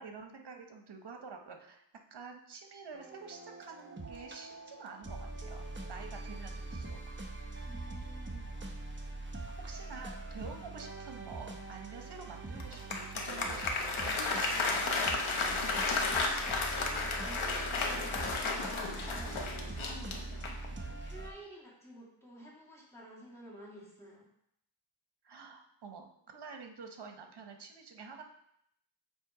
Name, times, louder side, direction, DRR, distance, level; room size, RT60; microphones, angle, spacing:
voice 1, 0.0-1.8 2.1-7.0 9.6-15.0 25.2-28.2, right 5 dB, 60° right, 4 dB, 0.9 m, -48 dB
sound 1, 2.9-21.3, right 2 dB, 25° right, 0.8 m, -43 dB
voice 2, 7.6-8.6 16.1-19.4 20.8-24.3, equal, 5° left, -6 dB, 2.1 m, -52 dB
Applause, 12.6-20.7, left 3 dB, 90° left, 1.0 m, -33 dB
7.4 x 2.9 x 4.9 m, 0.75 s
wide cardioid pair, 85°, 47 cm